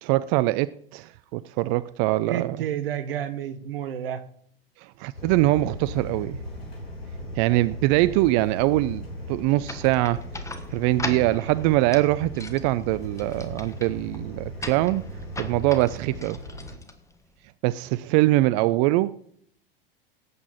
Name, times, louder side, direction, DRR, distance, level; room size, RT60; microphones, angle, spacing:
voice 1, 0.0-2.6 4.8-6.4 7.3-10.2 10.7-15.0 15.4-16.4 17.6-19.1, right 18 dB, 45° right, 17 dB, 0.5 m, -23 dB
voice 2, 2.3-4.2, right 10 dB, 70° right, 13 dB, 1.3 m, -30 dB
sound 1, 5.1-16.8, equal, 80° left, 4.1 m, -38 dB
sound 2, 9.7-17.5, left 3 dB, 10° left, 1.3 m, -40 dB
17.5 x 8.4 x 4.2 m, 0.63 s
figure-of-eight pair, 85°, 30 cm